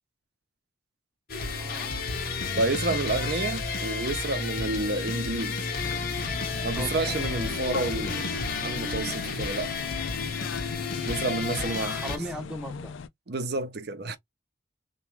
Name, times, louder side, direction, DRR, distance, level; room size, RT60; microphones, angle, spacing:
sound 1, 1.3-12.2, left 4 dB, 50° left, 0.7 m, -31 dB
voice 1, 1.4-1.9 6.7-7.2 11.8-12.9, equal, 5° right, 0.7 m, -39 dB
voice 2, 2.5-5.6 6.6-9.7 11.0-12.2 13.3-14.2, right 2 dB, 55° right, 0.6 m, -30 dB
sound 2, 5.8-13.1, left 5 dB, 85° left, 0.4 m, -39 dB
3.5 x 2.3 x 3.1 m
head